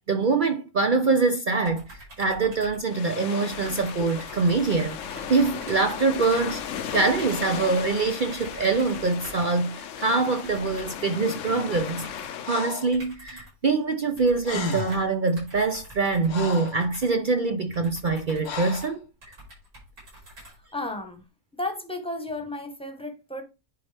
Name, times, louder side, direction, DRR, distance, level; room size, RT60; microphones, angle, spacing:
voice 1, 0.1-6.6 6.9-19.0, right 4 dB, 55° right, 0.5 m, -24 dB
sound 1, 1.7-3.2 3.5-9.5 10.4-11.1 11.7-12.4 12.9-13.7 14.2-21.0, right 1 dB, 80° right, 5.5 m, -47 dB
sound 2, 2.8-12.8, left 8 dB, 65° left, 1.0 m, -36 dB
Breathing, 12.4-13.0 14.1-14.2 14.4-15.1 15.8-16.8 18.4-19.0, left 5 dB, 85° left, 1.5 m, -34 dB
voice 2, 20.7-21.2 21.5-23.4, left 2 dB, 5° left, 1.0 m, -33 dB
10.5 x 4.2 x 3.4 m
omnidirectional pair, 1.5 m